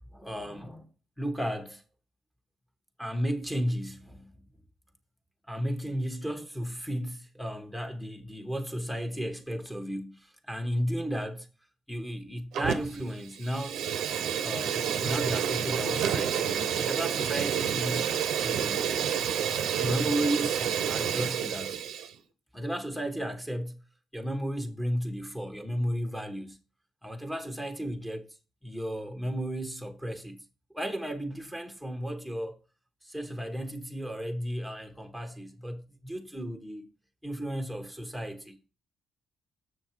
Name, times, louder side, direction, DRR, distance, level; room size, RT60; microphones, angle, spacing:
voice 1, 0.1-0.9 1.2-1.8 3.0-4.3 5.5-11.5 11.9-13.8 14.4-18.1 18.4-18.9 19.8-21.8 22.5-23.8 24.1-26.6 27.0-28.4 28.6-30.4 30.7-32.6 33.0-36.9 37.2-38.7, equal, 5° left, 1.1 m, -34 dB
Fire, 12.5-13.1 13.4-22.1, right 8 dB, 80° right, 0.7 m, -29 dB
6.6 x 6.2 x 4.6 m
cardioid pair, 90°, 0 cm